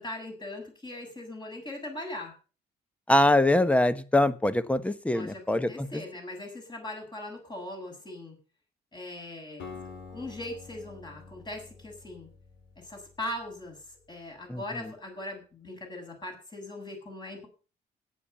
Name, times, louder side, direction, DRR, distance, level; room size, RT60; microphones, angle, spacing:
voice 1, 0.0-2.3 5.1-8.4 8.9-12.3 12.8-13.8 14.1-17.5, left 1 dB, 25° left, 2 dB, 7.5 m, -40 dB
voice 2, 3.1-6.0 14.5-14.6, left 1 dB, 5° left, 12 dB, 1.2 m, -23 dB
Acoustic guitar, 9.6-13.7, left 5 dB, 75° left, 4.8 m, -47 dB
13.5 x 10.5 x 5.6 m, 0.37 s
cardioid pair, 105°, 18 cm